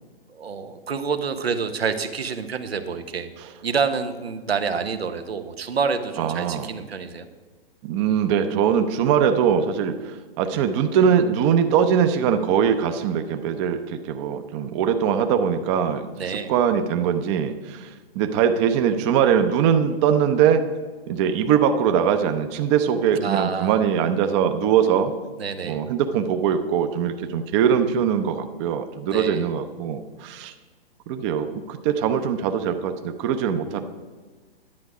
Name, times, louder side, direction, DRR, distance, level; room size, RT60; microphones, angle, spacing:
voice 1, 0.3-3.3 3.6-7.3 16.2-16.5 23.1-23.8 25.4-25.8 29.1-29.5 33.6-33.8, right 5 dB, 90° right, 8 dB, 1.0 m, -27 dB
voice 2, 6.2-6.7 7.8-17.9 18.2-20.6 21.1-25.1 25.6-30.5 31.1-33.8, right 8 dB, 30° right, 8 dB, 0.6 m, -22 dB
10.5 x 8.0 x 4.9 m, 1.4 s
hypercardioid pair, 130°, 30 cm